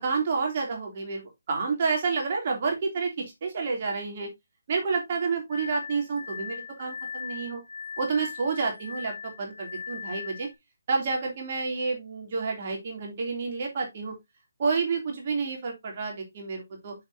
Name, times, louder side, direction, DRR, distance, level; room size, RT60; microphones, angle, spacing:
voice 1, 0.0-1.2 1.5-4.3 4.7-7.6 8.0-10.5 10.9-14.1 14.6-16.9, right 4 dB, 40° right, 1 dB, 3.0 m, -29 dB
Glass, 5.5-10.5, left 6 dB, 90° left, 1.3 m, -39 dB
7.1 x 6.8 x 2.8 m, 0.19 s
figure-of-eight pair, 155°, 0 cm